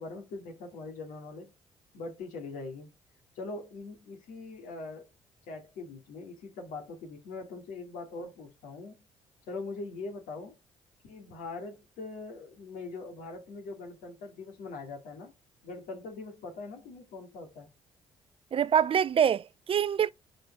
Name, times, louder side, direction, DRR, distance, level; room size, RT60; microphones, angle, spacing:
voice 1, 0.0-1.5 1.9-2.9 3.4-5.1 5.5-9.0 9.5-10.5 11.0-15.3 15.6-17.7, left 3 dB, 70° left, 2.3 m, -42 dB
voice 2, 18.5-20.1, right 8 dB, 40° right, 0.4 m, -25 dB
5.0 x 4.3 x 6.0 m
hypercardioid pair, 50°, 14 cm